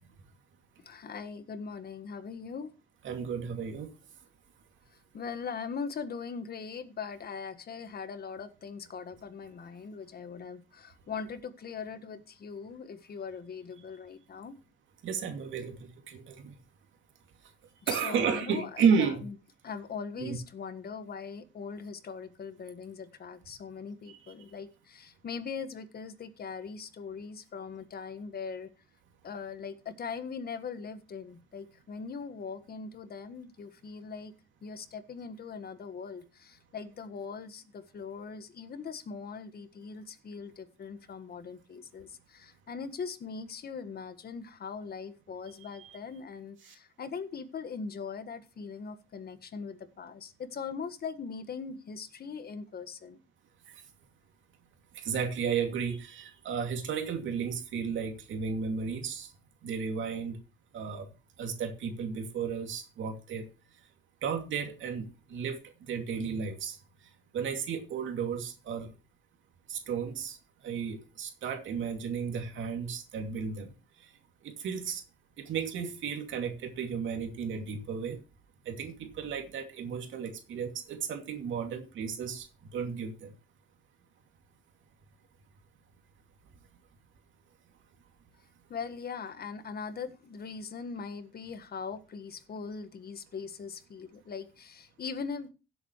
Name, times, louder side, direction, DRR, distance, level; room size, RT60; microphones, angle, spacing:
voice 1, 0.8-2.7 5.1-14.5 17.8-18.7 19.0-19.3 19.6-28.7 29.2-34.3 34.6-53.2 88.7-95.5, left 5 dB, 50° left, 11 dB, 1.6 m, -41 dB
voice 2, 3.0-3.9 15.0-16.5 17.9-19.2 20.2-20.4 24.1-24.2 45.8-46.0 46.7-46.8 53.7-53.8 54.9-59.3 59.6-60.4 60.7-61.1 61.4-63.5 64.2-66.8 67.3-68.9 69.7-70.4 70.6-73.7 74.0-74.1 74.4-75.0 75.4-78.2 78.6-82.5 82.7-83.3, right 6 dB, 75° right, 4 dB, 2.5 m, -33 dB
17.0 x 7.9 x 3.1 m, 0.32 s
cardioid pair, 90°, 20 cm